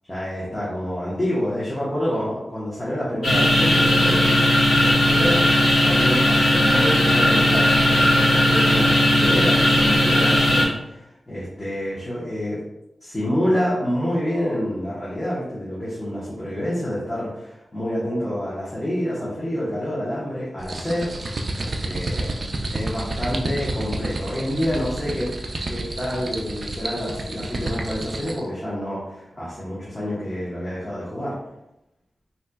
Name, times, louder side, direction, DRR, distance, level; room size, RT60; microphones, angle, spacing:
voice 1, 0.1-4.3 4.8-5.5 5.8-12.6 13.0-22.3 22.7-25.3 25.7-31.4, equal, 25° left, -8 dB, 1.2 m, -28 dB
sound 1, 3.2-10.6, left 1 dB, 70° left, 1.4 m, -17 dB
sound 2, 20.6-28.4, right 2 dB, 55° right, 0.4 m, -30 dB
4.1 x 2.7 x 2.3 m, 0.88 s
cardioid pair, 50°, 0 cm